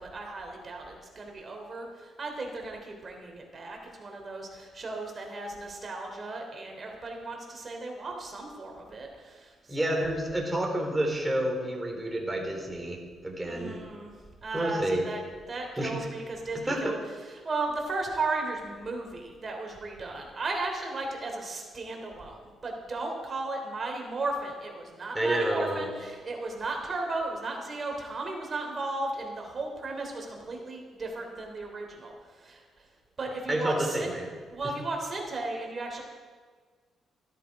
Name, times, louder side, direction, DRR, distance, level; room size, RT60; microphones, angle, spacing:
voice 1, 0.0-10.1 13.5-14.1 14.4-15.2 15.5-17.0 17.4-32.6 33.2-34.1 34.5-36.0, right 2 dB, 35° right, 1 dB, 3.3 m, -35 dB
voice 2, 9.7-13.8 14.5-15.1 15.8-15.9 16.7-17.0 25.1-25.9 33.5-34.3, right 1 dB, 10° right, 0 dB, 3.5 m, -29 dB
14.0 x 12.0 x 4.8 m, 1.5 s
cardioid pair, 90°, 0 cm